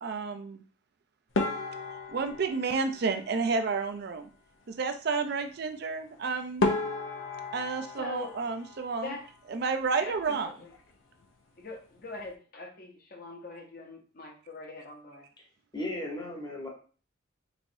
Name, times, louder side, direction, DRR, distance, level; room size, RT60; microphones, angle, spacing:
voice 1, 0.0-0.6 2.1-4.3 4.7-6.7 7.5-9.1 9.5-10.5, right 4 dB, 50° right, 8 dB, 0.4 m, -31 dB
sound 1, 1.3-3.8 6.1-6.2 6.6-9.4 9.6-10.4 10.7-10.9 11.2-11.3 11.9-12.3, left 3 dB, 75° left, 0.6 m, -34 dB
voice 2, 8.0-8.3 9.0-9.2 10.0-10.7 11.6-15.3, left 3 dB, 45° left, 1 dB, 0.8 m, -42 dB
voice 3, 15.7-16.7, left 1 dB, 20° left, -2 dB, 1.0 m, -36 dB
3.9 x 3.1 x 2.6 m, 0.40 s
head